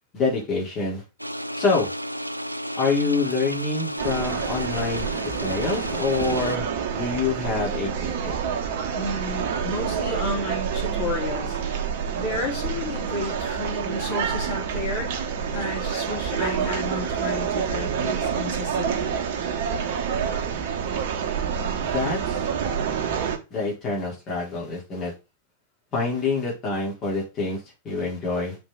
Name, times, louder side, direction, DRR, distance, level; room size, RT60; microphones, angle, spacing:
voice 1, 0.1-1.0 1.6-1.9 2.8-5.1 5.4-8.4 21.8-22.4 23.5-25.1 25.9-27.6 27.8-28.6, left 4 dB, 30° left, -3 dB, 3.7 m, -26 dB
sound 1, 1.2-6.6, equal, 90° right, 0.4 m, -32 dB
sound 2, 4.0-23.4, right 7 dB, 50° right, 1.1 m, -28 dB
voice 2, 8.9-11.8 12.1-15.1 15.5-19.2, left 2 dB, 50° left, -2 dB, 4.2 m, -32 dB
7.7 x 4.6 x 3.8 m, 0.28 s
figure-of-eight pair, 90°, 0 cm